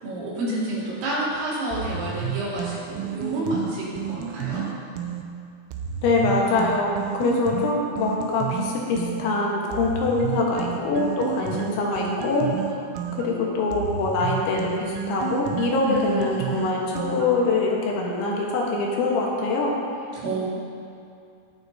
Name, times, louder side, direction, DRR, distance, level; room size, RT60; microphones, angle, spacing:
voice 1, 0.0-4.7 15.8-16.7 20.1-20.5, right 2 dB, 70° right, -8 dB, 5.3 m, -29 dB
sound 1, 1.7-5.3 5.7-9.3 9.7-17.5, right 8 dB, 85° right, 3.2 m, -31 dB
voice 2, 6.0-12.8 13.1-19.8, left 3 dB, 75° left, -2 dB, 3.6 m, -24 dB
21.5 x 7.5 x 2.8 m, 2.5 s
omnidirectional pair, 5.4 m